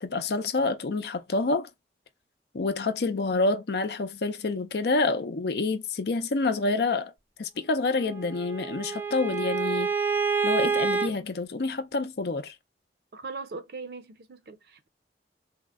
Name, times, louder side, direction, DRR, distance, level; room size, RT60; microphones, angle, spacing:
voice 1, 0.0-1.7 2.5-7.1 7.4-9.9 10.4-12.5, left 3 dB, 65° left, 0.5 m, -27 dB
Bowed string instrument, 8.0-11.1, right 5 dB, 10° right, 0.3 m, -28 dB
voice 2, 13.1-14.9, right 4 dB, 60° right, 0.5 m, -40 dB
3.5 x 2.1 x 3.5 m
head